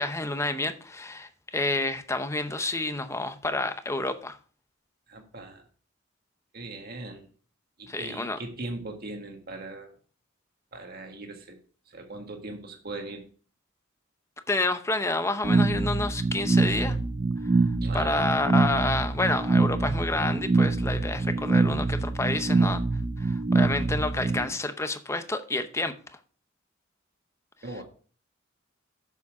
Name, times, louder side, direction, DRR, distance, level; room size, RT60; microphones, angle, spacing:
voice 1, 0.0-4.4 7.9-8.4 14.5-17.0 17.9-22.8 23.2-25.9, left 2 dB, 15° left, 9 dB, 0.7 m, -29 dB
voice 2, 5.1-5.6 6.5-7.3 7.8-9.9 10.7-11.6 11.9-13.2 17.8-18.2 27.6-27.8, right 2 dB, 50° right, 3 dB, 1.7 m, -39 dB
sound 1, 15.4-24.4, right 3 dB, 25° right, 0.5 m, -25 dB
7.1 x 6.9 x 4.8 m, 0.41 s
head